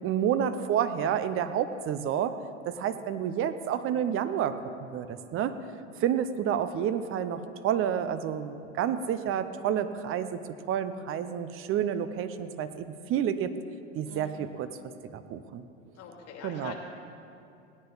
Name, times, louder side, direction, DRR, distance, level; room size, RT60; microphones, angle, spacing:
voice 1, 0.0-2.4 2.6-4.5 4.8-5.5 6.0-10.4 10.7-13.5 13.9-14.7 15.1-15.6 16.4-16.7, right 9 dB, 35° right, 12 dB, 0.8 m, -29 dB
voice 2, 14.0-14.4 15.9-16.7, left 7 dB, 40° left, 0 dB, 2.9 m, -44 dB
18.0 x 10.0 x 4.0 m, 2.6 s
hypercardioid pair, 100°, 39 cm